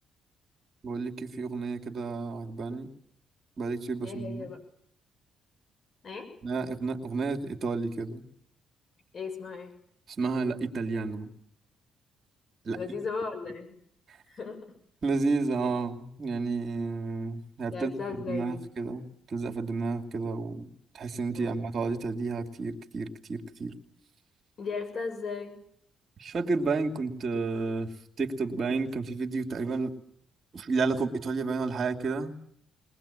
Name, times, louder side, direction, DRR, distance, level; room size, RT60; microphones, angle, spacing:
voice 1, 0.8-2.9 3.6-4.5 6.4-8.2 10.2-11.3 12.6-12.8 15.0-18.0 18.3-23.7 26.2-29.9 30.5-32.3, right 4 dB, 50° right, 3 dB, 2.6 m, -31 dB
voice 2, 4.0-4.6 6.0-6.3 9.1-9.7 12.7-13.7 14.3-14.6 17.7-18.6 21.3-21.6 24.6-25.5, left 4 dB, 50° left, 7 dB, 7.1 m, -36 dB
22.0 x 20.0 x 8.9 m, 0.70 s
cardioid pair, 90°, 0 cm